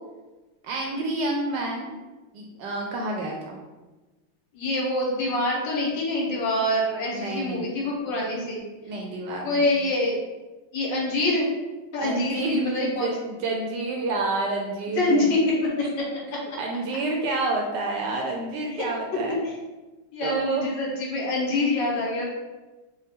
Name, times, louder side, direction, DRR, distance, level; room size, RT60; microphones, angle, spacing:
voice 1, 0.6-1.9 2.3-3.6 7.1-7.7 8.9-9.7 12.0-15.3 16.6-19.4 20.2-20.6, right 2 dB, 75° right, 0 dB, 1.1 m, -29 dB
voice 2, 4.5-8.6 9.4-10.2 10.7-11.5 11.9-13.1 15.0-15.4 15.8-16.6 18.7-18.9 19.4-19.5 20.1-22.2, left 2 dB, 70° left, -3 dB, 1.5 m, -25 dB
4.9 x 2.3 x 3.6 m, 1.2 s
omnidirectional pair, 2.2 m